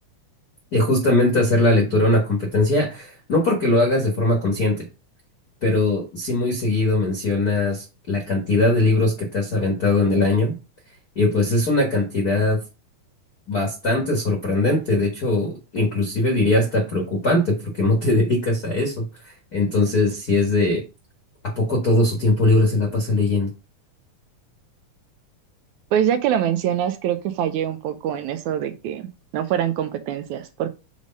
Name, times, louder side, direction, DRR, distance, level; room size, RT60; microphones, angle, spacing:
voice 1, 0.7-4.8 5.6-10.5 11.1-12.6 13.5-20.8 21.4-23.5, left 2 dB, 45° left, 1.4 m, -20 dB
voice 2, 25.9-30.7, right 10 dB, 75° right, 1.9 m, -24 dB
6.5 x 3.3 x 5.2 m
omnidirectional pair, 3.7 m